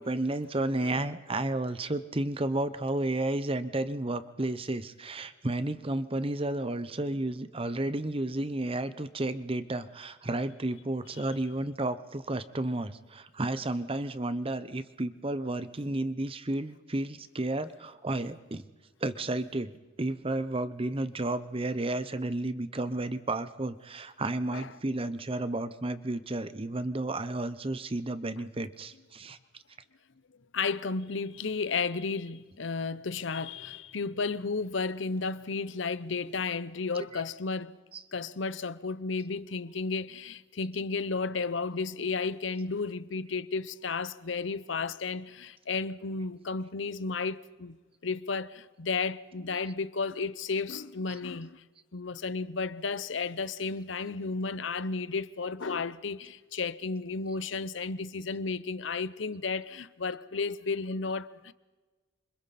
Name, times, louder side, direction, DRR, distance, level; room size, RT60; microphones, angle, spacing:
voice 1, 0.0-18.6 19.0-19.7 20.0-29.4 37.1-37.2 37.9-38.0, right 2 dB, 30° right, 0.9 m, -32 dB
voice 2, 0.7-1.1 24.5-24.7 30.5-37.8 38.1-47.8 48.0-51.6 51.9-61.5, left 4 dB, 70° left, 0.8 m, -33 dB
28.0 x 25.0 x 4.3 m
head